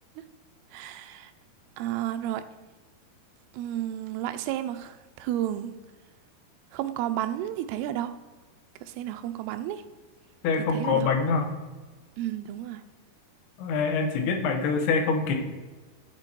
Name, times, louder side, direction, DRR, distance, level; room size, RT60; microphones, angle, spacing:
voice 1, 0.7-1.3 1.8-2.4 3.5-5.7 6.7-8.2 8.8-9.8 10.7-11.1 12.2-12.8, right 12 dB, 85° right, 10 dB, 2.5 m, -32 dB
voice 2, 10.4-11.5 13.6-15.4, left 4 dB, 80° left, 4 dB, 3.1 m, -25 dB
11.0 x 4.2 x 4.4 m, 1.3 s
omnidirectional pair, 4.5 m